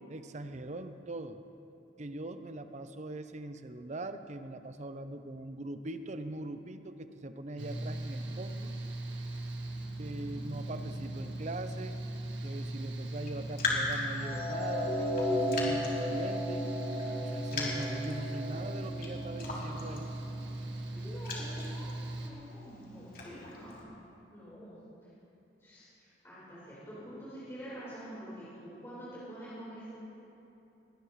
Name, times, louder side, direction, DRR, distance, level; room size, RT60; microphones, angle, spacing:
voice 1, 0.1-1.4 2.0-8.7 10.0-12.0 12.4-15.0 15.3-16.7 17.2-20.1, right 2 dB, 40° right, 9 dB, 0.7 m, -42 dB
Mechanical fan, 7.6-22.3, right 2 dB, 85° right, 1.7 m, -39 dB
voice 2, 10.1-11.4 20.9-23.8 24.3-24.7 25.0-25.1 25.6-29.9, equal, 15° left, -11 dB, 4.4 m, -47 dB
Raindrop, 13.1-23.8, left 3 dB, 55° left, 3.4 m, -40 dB
sound 1, 14.2-20.5, equal, 30° left, 2.2 m, -35 dB
20.0 x 19.0 x 3.2 m, 3.0 s
head